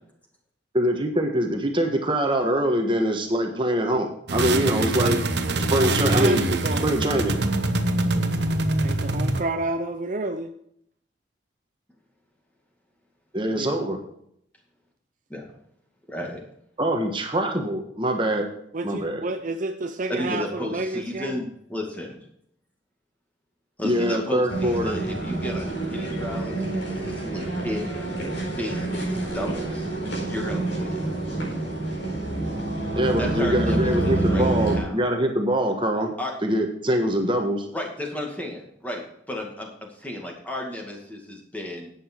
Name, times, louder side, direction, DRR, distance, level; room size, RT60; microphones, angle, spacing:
voice 1, 0.7-5.2 5.7-6.5 6.8-7.4 13.3-14.0 16.8-18.5 18.8-19.2 23.8-25.0 32.9-36.1 36.4-37.7, equal, 25° right, 4 dB, 1.4 m, -24 dB
sound 1, 4.3-9.4, right 2 dB, 65° right, 1.1 m, -24 dB
voice 2, 5.7-6.9 8.8-10.5 13.5-13.8 18.7-21.4, right 2 dB, 45° right, 8 dB, 0.6 m, -30 dB
voice 3, 7.9-8.3 15.3-15.5 16.1-16.4 20.1-22.2 23.8-27.8 28.6-29.9 30.3-31.0 33.2-35.1 36.2-36.3 37.7-41.9, left 1 dB, 10° left, 0 dB, 2.2 m, -33 dB
sound 2, 24.5-34.8, right 2 dB, 70° left, 4.7 m, -27 dB
11.0 x 8.7 x 4.6 m, 0.71 s
head